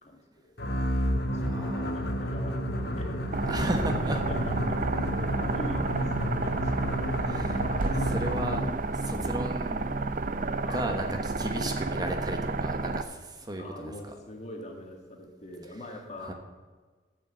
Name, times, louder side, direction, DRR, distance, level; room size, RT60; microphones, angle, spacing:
voice 1, 0.0-0.7 1.2-1.5 2.2-3.1 3.5-4.9 5.2-5.9 6.2-7.2 7.8-8.1 9.1-9.5 10.6-10.9 13.6-16.3, left 1 dB, 40° left, 1 dB, 2.3 m, -43 dB
sound 1, 0.6-8.8, equal, 65° left, 1.4 m, -30 dB
voice 2, 1.3-2.1 3.4-4.2 7.2-9.8 10.7-13.9 16.3-16.4, right 1 dB, 25° right, 4 dB, 1.1 m, -35 dB
sound 2, 3.3-13.0, right 3 dB, 50° right, 0.6 m, -31 dB
13.0 x 6.6 x 8.0 m, 1.5 s
head